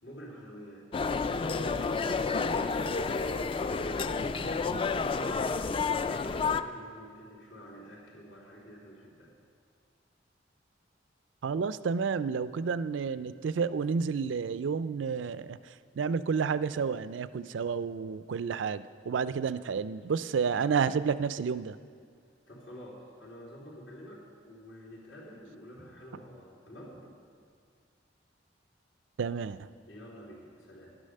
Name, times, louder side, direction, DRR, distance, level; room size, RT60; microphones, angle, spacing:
voice 1, 0.0-0.9 1.3-3.3 3.9-9.3 15.7-15.8 22.5-27.1 29.9-30.9, equal, 80° left, -4 dB, 3.3 m, -48 dB
sound 1, 0.9-6.6, left 4 dB, 30° left, 0.3 m, -30 dB
voice 2, 11.4-21.8 29.2-29.7, right 5 dB, 85° right, 15 dB, 0.4 m, -30 dB
10.5 x 9.9 x 6.5 m, 2.1 s
head